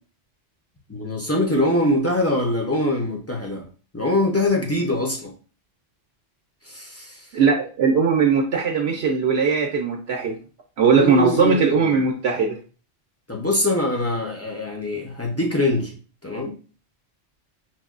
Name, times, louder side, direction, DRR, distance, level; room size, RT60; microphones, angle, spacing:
voice 1, 0.9-3.7 3.9-5.3 6.6-7.3 10.8-12.0 13.3-16.0 16.2-16.5, left 1 dB, 20° left, -1 dB, 0.4 m, -23 dB
voice 2, 7.3-10.4 10.8-12.6, right 5 dB, 65° right, 1 dB, 0.8 m, -19 dB
5.9 x 2.2 x 2.4 m, 0.37 s
omnidirectional pair, 1.2 m